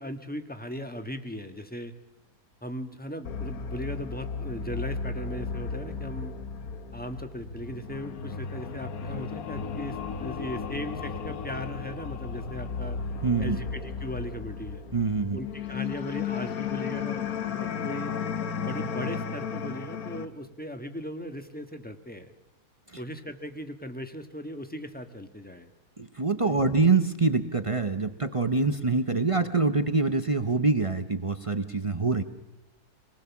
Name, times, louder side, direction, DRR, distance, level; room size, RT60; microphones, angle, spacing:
voice 1, 0.0-1.9 2.6-6.4 6.9-13.0 13.4-14.8 15.3-18.1 18.6-22.3 23.0-25.7 26.4-26.7, equal, 5° left, 7 dB, 1.3 m, -38 dB
sound 1, 3.2-20.2, left 6 dB, 65° left, 1.5 m, -34 dB
voice 2, 13.2-13.6 14.9-15.4 22.9-23.0 26.0-32.2, right 4 dB, 30° right, 9 dB, 0.6 m, -25 dB
26.0 x 19.5 x 7.1 m, 0.99 s
omnidirectional pair, 1.7 m